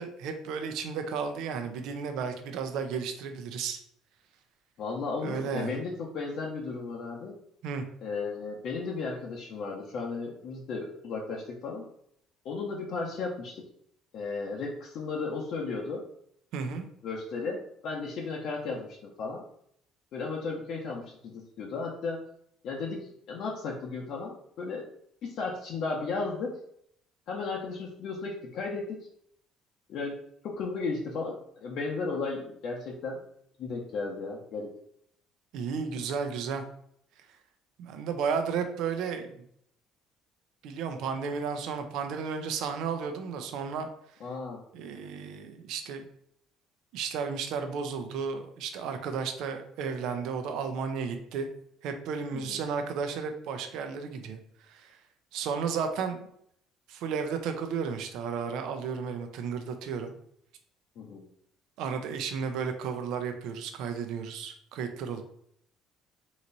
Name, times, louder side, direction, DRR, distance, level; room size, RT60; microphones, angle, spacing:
voice 1, 0.0-3.8 5.2-5.8 7.6-7.8 16.5-16.9 35.5-36.6 37.8-39.4 40.6-43.9 44.7-46.0 46.9-51.5 51.8-54.4 54.7-55.0 55.3-56.3 56.9-60.1 61.8-65.2, right 6 dB, 75° right, 6 dB, 0.7 m, -33 dB
voice 2, 4.8-7.4 8.0-11.8 12.4-13.6 14.1-16.0 17.0-19.4 20.1-22.2 22.6-24.9 25.2-26.6 27.3-29.0 29.9-33.2 33.6-34.7 44.2-44.6 52.3-52.6 61.0-61.2, left 4 dB, 60° left, -2 dB, 0.8 m, -35 dB
4.0 x 3.1 x 4.0 m, 0.70 s
cardioid pair, 135°, 0 cm